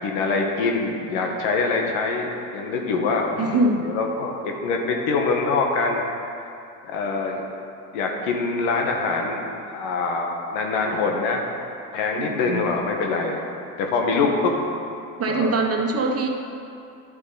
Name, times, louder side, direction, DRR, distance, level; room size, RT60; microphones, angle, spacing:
voice 1, 0.0-6.0 6.4-6.5 6.8-7.4 7.9-11.4 11.9-13.4 13.8-14.5 15.3-15.7, left 4 dB, 80° left, 1 dB, 1.5 m, -24 dB
voice 2, 3.4-3.9 12.2-12.7 15.2-16.3, right 2 dB, 35° right, 2 dB, 1.3 m, -23 dB
11.0 x 7.9 x 4.0 m, 2.6 s
supercardioid pair, 90°, 42 cm